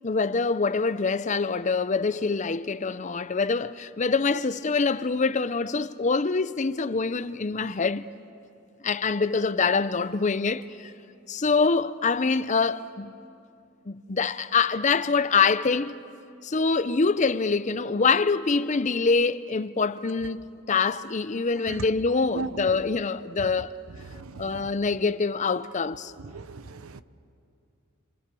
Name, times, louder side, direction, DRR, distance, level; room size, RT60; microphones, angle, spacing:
voice 1, 0.0-8.1 8.8-10.9 11.3-13.1 13.9-16.0 16.4-23.7 24.4-26.1, left 4 dB, 35° left, 0.6 m, -25 dB
voice 2, 24.1-24.6 26.3-27.0, right 4 dB, 70° right, 0.8 m, -37 dB
29.5 x 26.5 x 6.9 m
head